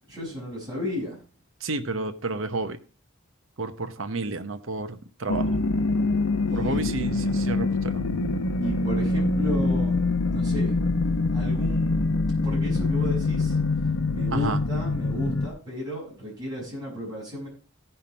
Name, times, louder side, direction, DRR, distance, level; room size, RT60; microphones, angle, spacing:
voice 1, 0.1-1.2 6.4-7.0 8.6-10.0 10.3-10.8 11.3-12.2 12.4-13.6 14.1-17.5, equal, 20° right, -5 dB, 6.1 m, -33 dB
voice 2, 1.6-2.8 3.6-5.6 6.5-8.0 14.3-14.6, right 3 dB, 65° right, 9 dB, 1.0 m, -31 dB
sound 1, 5.3-15.5, left 3 dB, 80° left, 0.9 m, -24 dB
17.0 x 5.7 x 4.3 m, 0.35 s
head